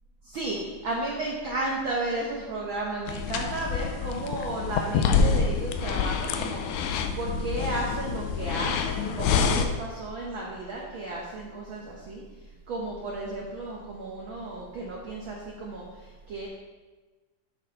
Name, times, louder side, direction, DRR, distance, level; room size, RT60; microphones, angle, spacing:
voice 1, 0.2-6.6 7.1-12.2 12.7-16.5, right 2 dB, 85° right, -2 dB, 1.1 m, -33 dB
sound 1, 3.1-9.7, left 6 dB, 80° left, 1.8 m, -27 dB
8.0 x 6.3 x 4.0 m, 1.3 s
omnidirectional pair, 3.6 m